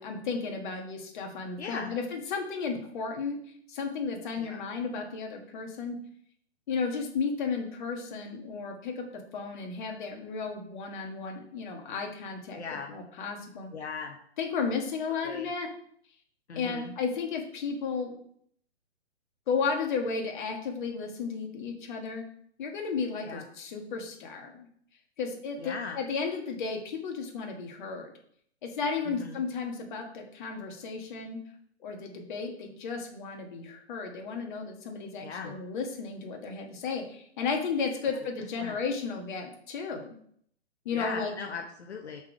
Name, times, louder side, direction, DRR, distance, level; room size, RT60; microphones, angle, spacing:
voice 1, 0.0-3.4 3.7-6.0 6.7-9.0 9.3-12.6 12.9-13.7 14.4-15.7 16.6-18.2 19.5-22.2 22.6-24.7 25.2-28.1 28.6-31.4 31.8-40.2 40.9-41.3, left 5 dB, 45° left, 2 dB, 1.8 m, -33 dB
voice 2, 1.6-2.0 4.4-4.6 12.6-13.0 13.7-14.2 15.2-15.5 16.5-16.9 23.2-23.4 25.6-26.0 29.0-29.4 35.2-35.6 38.1-38.3 38.6-38.8 40.9-42.2, left 5 dB, 70° left, 3 dB, 1.0 m, -38 dB
5.8 x 4.7 x 6.1 m, 0.64 s
figure-of-eight pair, 130°, 34 cm